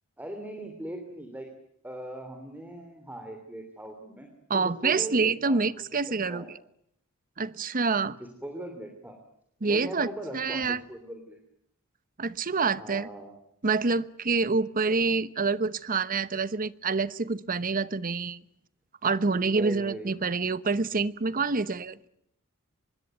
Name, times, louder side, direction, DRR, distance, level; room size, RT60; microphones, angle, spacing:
voice 1, 0.2-1.5 1.8-4.3 4.5-6.5 8.2-9.2 9.7-11.4 12.8-13.3 14.8-15.0 19.5-20.1, right 1 dB, 10° right, 5 dB, 3.2 m, -40 dB
voice 2, 4.5-6.5 7.4-8.2 9.6-10.1 10.3-10.8 12.2-13.1 13.6-18.4 19.0-22.1, right 4 dB, 40° right, 16 dB, 1.0 m, -27 dB
25.5 x 21.5 x 9.4 m, 0.73 s
head